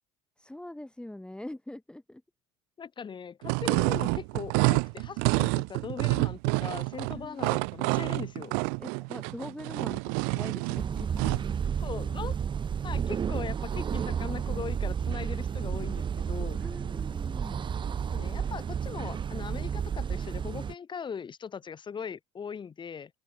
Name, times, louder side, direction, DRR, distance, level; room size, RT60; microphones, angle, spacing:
voice 1, 0.4-2.2 7.1-7.5 8.8-10.0 10.3-11.4 15.7-15.8 16.6-17.7, left 1 dB, 5° left, 5.6 m, -43 dB
voice 2, 2.8-8.5 11.8-12.4 12.8-16.6 18.1-23.1, left 6 dB, 30° left, 6.9 m, -40 dB
sound 1, 3.4-11.5, right 40 dB or more, 70° right, 2.4 m, -28 dB
sound 2, 10.8-20.7, right 7 dB, 30° right, 1.5 m, -32 dB
hypercardioid pair, 80°, 15 cm